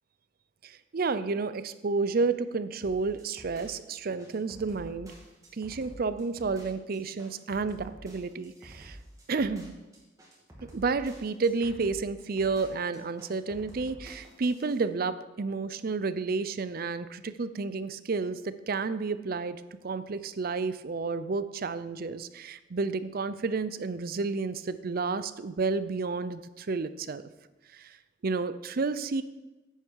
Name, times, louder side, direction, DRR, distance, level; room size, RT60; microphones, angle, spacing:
voice 1, 0.6-5.1 5.6-9.0 9.3-9.7 10.7-27.2 27.7-28.0 28.2-29.2, right 4 dB, 55° right, 14 dB, 0.5 m, -31 dB
sound 1, 2.8-14.8, right 1 dB, 20° right, 2.3 m, -49 dB
10.5 x 8.9 x 4.7 m, 1.1 s
head